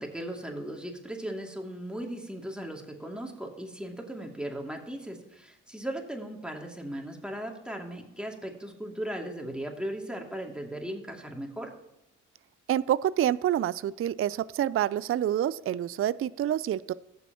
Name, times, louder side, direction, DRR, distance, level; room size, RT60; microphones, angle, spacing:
voice 1, 0.0-11.7, right 1 dB, 5° right, 1 dB, 2.5 m, -37 dB
voice 2, 12.7-16.9, right 11 dB, 40° right, 18 dB, 0.4 m, -27 dB
17.0 x 6.8 x 3.0 m, 0.91 s
hypercardioid pair, 45°, 35 cm